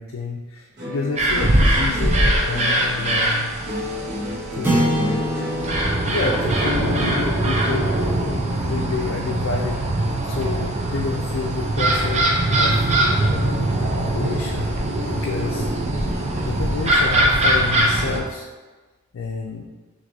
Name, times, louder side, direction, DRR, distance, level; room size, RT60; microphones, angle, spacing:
voice 1, 0.0-3.5 4.5-5.3 6.0-9.8 10.2-12.9 13.2-14.7 15.1-15.7 16.4-18.5 19.1-19.7, left 4 dB, 70° left, 0 dB, 0.4 m, -29 dB
sound 1, 0.8-9.2 9.5-10.2, left 1 dB, 55° right, 1.1 m, -33 dB
sound 2, 1.2-18.2, right 1 dB, 35° right, 0.6 m, -21 dB
sound 3, 4.6-9.1, right 1 dB, 10° right, 0.9 m, -27 dB
5.9 x 2.6 x 2.6 m, 1.3 s
head